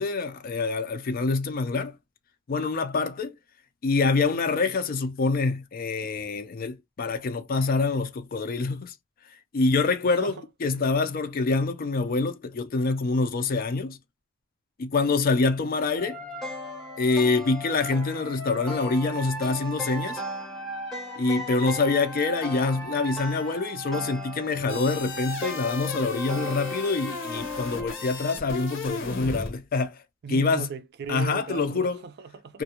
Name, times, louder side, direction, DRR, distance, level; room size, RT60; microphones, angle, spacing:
voice 1, 0.0-1.9 2.5-3.3 3.8-8.9 9.5-10.3 10.6-14.0 14.8-16.2 17.0-20.2 21.2-30.0 30.3-30.7 31.1-32.0 32.5-32.6, left 3 dB, 45° left, 0.4 m, -26 dB
voice 2, 10.0-10.4 10.7-10.8 30.2-32.6, right 5 dB, 55° right, 0.4 m, -38 dB
sound 1, 16.0-28.3, equal, ahead, 0.7 m, -36 dB
sound 2, 24.7-29.5, left 4 dB, 70° left, 0.9 m, -36 dB
2.4 x 2.2 x 2.7 m
head